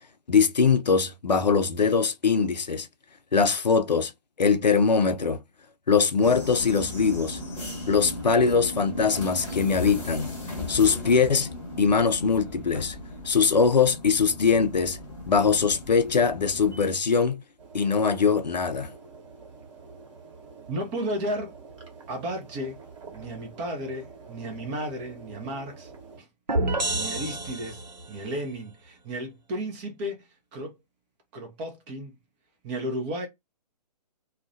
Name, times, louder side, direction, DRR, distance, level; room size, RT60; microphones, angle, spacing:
voice 1, 0.3-2.9 3.3-4.1 4.4-5.4 5.9-7.4 7.9-10.3 10.7-11.5 11.8-13.0 13.2-15.0 15.3-17.4 17.7-18.9, left 5 dB, 85° left, 0.5 m, -22 dB
sound 1, 6.2-16.9, left 2 dB, 15° left, 1.2 m, -37 dB
sound 2, 17.6-26.2, right 4 dB, 50° right, 1.1 m, -47 dB
voice 2, 20.7-21.5 22.1-22.8 23.1-25.9 26.2-26.3 26.9-27.8 28.1-30.8 31.3-32.1 32.6-33.3, equal, 15° right, 0.4 m, -33 dB
sound 3, 26.5-28.2, right 2 dB, 85° right, 0.6 m, -28 dB
2.3 x 2.1 x 2.5 m
figure-of-eight pair, 130°, 21 cm